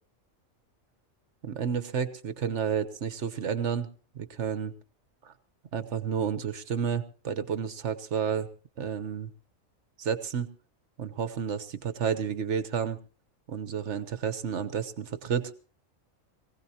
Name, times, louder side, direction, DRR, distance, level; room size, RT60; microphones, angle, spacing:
voice 1, 1.4-3.9 4.1-4.7 5.2-5.3 5.7-8.5 8.8-9.3 10.0-10.5 11.0-13.0 13.5-15.5, right 7 dB, 65° right, 12 dB, 1.3 m, -31 dB
22.5 x 16.5 x 2.9 m, 0.38 s
omnidirectional pair, 1.3 m